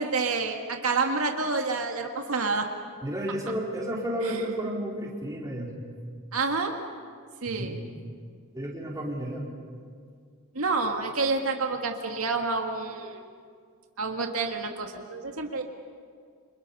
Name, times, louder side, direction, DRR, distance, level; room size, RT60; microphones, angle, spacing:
voice 1, 0.0-2.7 4.3-4.4 6.3-6.7 7.4-7.8 10.5-13.2 14.0-15.6, right 4 dB, 85° right, 3 dB, 2.0 m, -28 dB
voice 2, 3.0-5.9 7.5-8.0 8.5-9.5, right 1 dB, 15° right, -3 dB, 4.3 m, -32 dB
29.0 x 27.0 x 5.5 m, 2.1 s
head